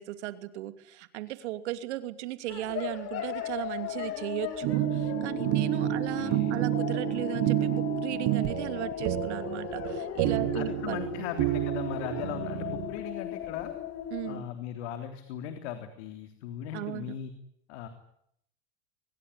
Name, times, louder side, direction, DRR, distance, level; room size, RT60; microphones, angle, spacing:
voice 1, 0.0-11.3 14.1-14.4 16.7-17.1, right 15 dB, 85° right, 10 dB, 2.9 m, -36 dB
sound 1, 2.5-14.4, left 10 dB, 45° left, 4.9 m, -37 dB
sound 2, 4.6-12.9, right 17 dB, 60° right, 1.6 m, -29 dB
voice 2, 5.8-6.5 10.2-13.7 14.3-17.3 17.7-17.9, left 10 dB, 75° left, 7 dB, 3.6 m, -38 dB
25.0 x 22.0 x 9.9 m, 0.73 s
supercardioid pair, 125°, 34 cm